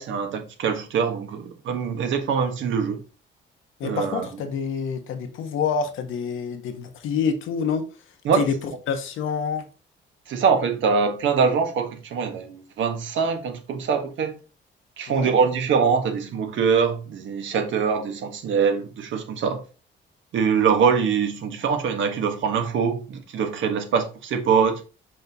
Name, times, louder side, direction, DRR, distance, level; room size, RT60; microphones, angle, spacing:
voice 1, 0.0-3.0 3.8-4.3 8.2-8.4 10.3-14.3 15.0-19.6 20.3-24.8, right 6 dB, 75° right, 1.4 m, -23 dB
voice 2, 3.8-7.9 8.3-9.7 15.1-15.3, left 6 dB, 85° left, 1.2 m, -27 dB
5.5 x 5.4 x 3.6 m
cardioid pair, 90°, 20 cm